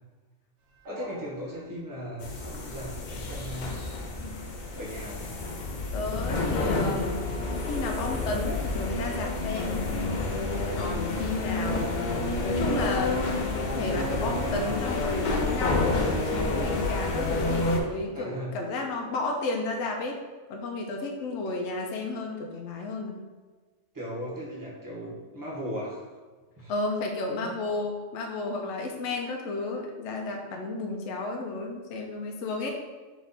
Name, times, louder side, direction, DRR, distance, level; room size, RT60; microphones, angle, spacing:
sound 1, 0.7-8.2, left 2 dB, 65° right, 1.0 m, -43 dB
voice 1, 0.9-3.8 4.7-5.3 18.1-18.5 23.9-26.0 26.6-26.7 27.3-27.5, equal, 15° right, -6 dB, 1.1 m, -37 dB
sound 2, 2.2-17.8, left 2 dB, 50° left, 0.6 m, -29 dB
voice 2, 5.9-7.2 7.7-9.8 10.8-20.2 20.5-23.2 26.7-32.7, left 2 dB, 70° left, 1 dB, 0.9 m, -32 dB
3.6 x 3.3 x 4.0 m, 1.4 s
omnidirectional pair, 1.3 m